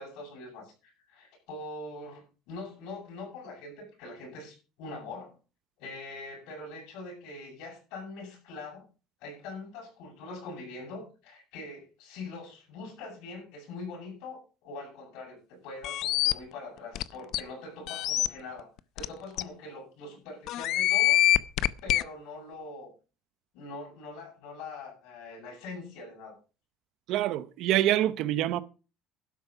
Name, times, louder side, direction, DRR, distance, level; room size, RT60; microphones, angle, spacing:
voice 1, 0.0-5.3 5.8-8.9 9.2-18.7 18.9-21.2 21.8-22.9 23.5-26.4, left 3 dB, 85° left, 7.7 m, -43 dB
sound 1, 15.8-16.3 16.9-17.0 17.3-17.4 17.9-18.3 19.0-19.1 19.4-19.5 20.5-22.0, left 15 dB, 60° left, 0.6 m, -24 dB
voice 2, 27.1-28.6, right 13 dB, 65° right, 0.8 m, -26 dB
12.0 x 9.5 x 5.7 m
cardioid pair, 150°, 0 cm